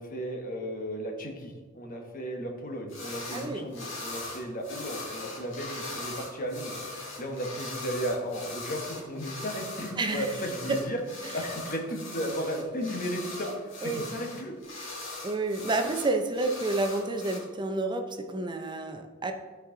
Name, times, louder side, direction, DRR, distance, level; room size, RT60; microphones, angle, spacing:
voice 1, 0.0-6.8 7.2-11.0 11.3-13.5 13.8-14.6, equal, 45° left, 3 dB, 1.2 m, -34 dB
sound 1, 2.9-3.5 3.7-17.4, left 2 dB, 65° left, 2.1 m, -40 dB
voice 2, 3.3-3.7 10.0-10.3 10.7-10.8 13.8-14.1 15.2-19.3, right 2 dB, 20° right, 6 dB, 0.5 m, -29 dB
12.5 x 4.7 x 3.8 m, 1.4 s
head